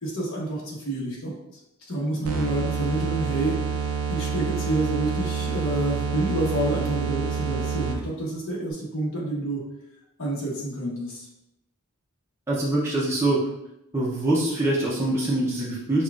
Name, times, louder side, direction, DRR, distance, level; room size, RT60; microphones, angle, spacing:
voice 1, 0.0-1.3 1.9-3.6 4.1-9.6 10.2-11.3, right 1 dB, 65° left, -4 dB, 1.2 m, -28 dB
sound 1, 2.2-8.2, right 6 dB, 80° right, 0.6 m, -28 dB
voice 2, 12.5-13.4 13.9-16.0, right 1 dB, 10° right, -7 dB, 0.6 m, -24 dB
5.4 x 2.4 x 2.4 m, 0.85 s
head